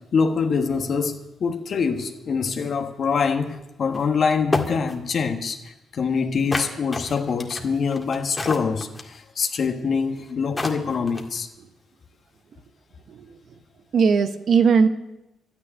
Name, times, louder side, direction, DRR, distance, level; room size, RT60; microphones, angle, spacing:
voice 1, 0.1-11.5, left 5 dB, 50° left, 4 dB, 1.4 m, -24 dB
sound 1, 3.9-4.0 4.5-4.9 6.5-9.2 10.2-10.3 10.6-11.4, left 2 dB, 20° left, 1.9 m, -28 dB
voice 2, 13.9-14.9, right 5 dB, 55° right, 9 dB, 1.2 m, -19 dB
12.0 x 9.7 x 10.0 m, 0.94 s
cardioid pair, 90°, 0 cm